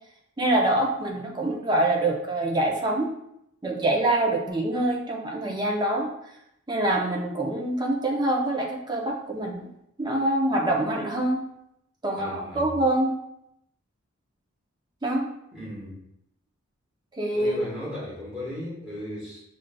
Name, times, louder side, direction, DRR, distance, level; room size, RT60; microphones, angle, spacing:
voice 1, 0.4-3.1 3.6-6.1 6.7-9.7 10.0-11.4 12.0-13.1 15.0-15.3 17.2-17.6, right 1 dB, 20° right, -1 dB, 0.5 m, -25 dB
voice 2, 12.2-12.6 15.5-16.0 17.3-19.4, left 1 dB, 5° right, -9 dB, 1.4 m, -36 dB
6.1 x 2.4 x 2.2 m, 0.79 s
head